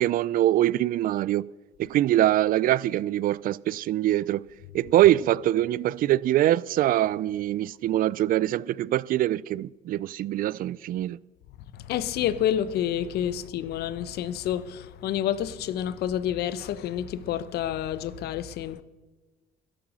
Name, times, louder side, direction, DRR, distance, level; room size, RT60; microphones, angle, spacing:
voice 1, 0.0-1.5 1.8-4.4 4.7-11.2, right 13 dB, 60° right, 0.4 m, -23 dB
voice 2, 11.7-18.8, left 10 dB, 70° left, 0.8 m, -29 dB
12.0 x 12.0 x 6.2 m
cardioid pair, 110°, 17 cm